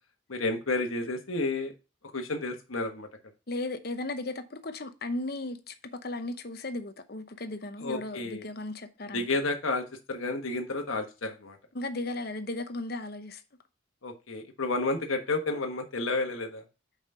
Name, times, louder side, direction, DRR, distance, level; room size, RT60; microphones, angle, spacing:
voice 1, 0.3-1.7 2.1-3.1 7.8-8.5 9.1-11.6 14.0-16.6, left 2 dB, 85° left, 1.2 m, -31 dB
voice 2, 3.5-9.3 11.7-13.4, left 2 dB, 50° left, 0.8 m, -36 dB
5.6 x 5.0 x 5.4 m
head